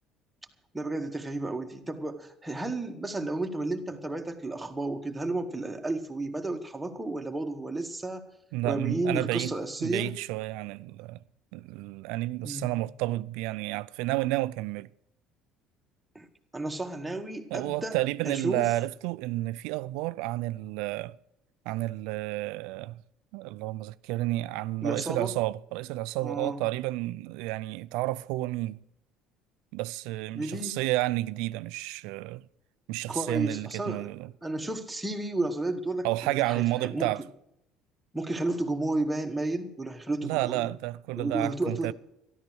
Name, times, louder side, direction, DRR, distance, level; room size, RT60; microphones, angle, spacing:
voice 1, 0.7-8.3 8.6-10.1 12.4-12.8 16.2-16.3 16.5-18.0 18.2-18.7 24.8-25.3 26.2-26.6 30.3-30.8 33.1-34.1 34.4-37.1 38.1-40.7 41.2-41.9, right 2 dB, 10° right, 1.9 m, -32 dB
voice 2, 8.5-9.5 9.8-11.2 11.5-14.9 17.5-21.2 21.7-23.0 23.3-28.8 29.7-32.4 32.9-34.3 36.0-37.2 40.2-41.9, right 18 dB, 80° right, 0.4 m, -31 dB
13.5 x 12.0 x 6.3 m
cardioid pair, 110°, 0 cm